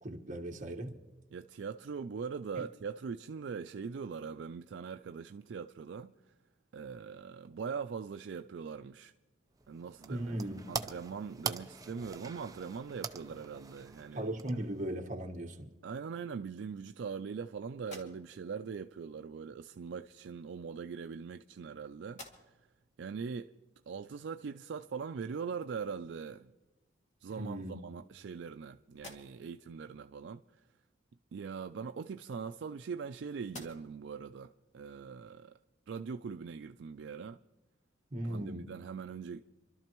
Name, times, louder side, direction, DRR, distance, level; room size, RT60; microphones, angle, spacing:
voice 1, 0.0-1.0 2.6-2.7 10.1-10.6 14.1-15.7 27.3-27.8 38.1-38.7, right 1 dB, 40° right, 1.4 m, -38 dB
voice 2, 1.3-6.1 6.7-9.1 9.7-10.3 10.7-14.2 15.8-22.5 23.0-23.5 23.9-26.5 27.2-30.4 31.3-35.5 35.9-37.4 38.2-39.4, right 6 dB, 65° right, 0.4 m, -41 dB
sound 1, 9.5-14.9, right 5 dB, 20° right, 0.6 m, -43 dB
sound 2, 17.8-18.6 19.7-19.9 20.8-21.7 22.0-22.8 23.3-23.4 26.0-26.1 26.6-27.3 27.8-28.6 28.9-29.6 31.6-33.1 33.4-34.1, left 1 dB, 40° left, 2.2 m, -54 dB
28.0 x 12.5 x 3.0 m
head